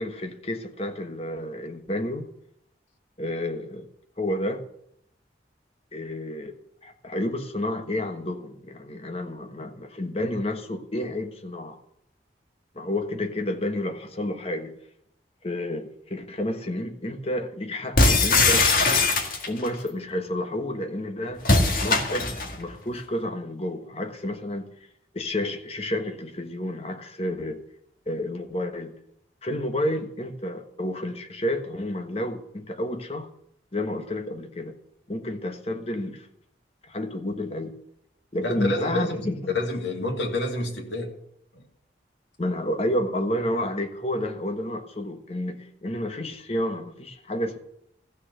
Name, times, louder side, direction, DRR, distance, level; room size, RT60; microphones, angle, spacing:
voice 1, 0.0-2.3 3.2-3.9 4.2-4.6 5.9-11.8 12.7-14.7 15.4-18.7 19.4-21.4 21.8-24.7 25.1-27.6 28.1-28.9 29.4-33.3 33.7-34.7 35.1-36.3 36.9-37.7 38.3-39.6 42.4-47.6, left 1 dB, 35° left, 1.3 m, -30 dB
sound 1, 18.0-19.7 21.4-22.6, left 3 dB, 50° left, 1.8 m, -20 dB
voice 2, 38.4-39.1 39.5-41.1 41.5-41.6, left 1 dB, 90° left, 2.5 m, -28 dB
14.5 x 6.4 x 8.2 m
head